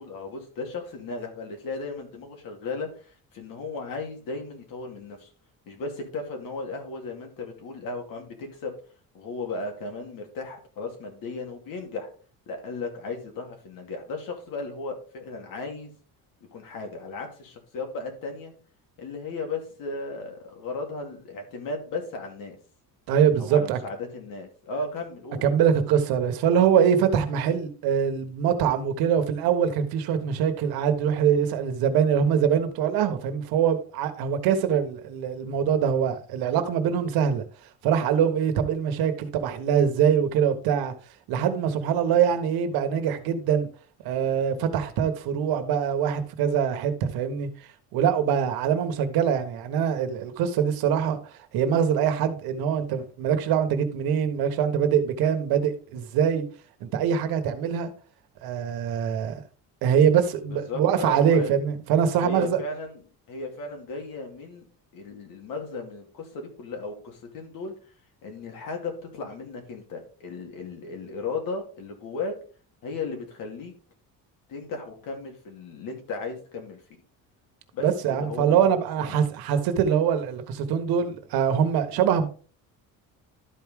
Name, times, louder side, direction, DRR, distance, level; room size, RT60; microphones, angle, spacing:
voice 1, 0.0-5.3 5.7-8.7 9.1-12.1 12.5-15.9 16.5-18.5 19.0-22.6 23.4-25.4 60.5-61.5 62.2-63.0 63.3-64.7 64.9-67.7 68.2-72.3 72.8-73.7 74.5-76.8 77.7-77.9 78.2-78.7 79.0-79.3, left 3 dB, 70° left, 2.6 m, -35 dB
voice 2, 23.1-23.8 25.4-37.4 37.8-40.9 41.3-43.7 44.0-47.5 47.9-51.2 51.5-56.4 56.8-57.9 58.4-59.3 59.8-62.6 77.8-82.3, right 8 dB, 80° right, 1.4 m, -23 dB
12.5 x 4.8 x 3.6 m
cardioid pair, 170°, 36 cm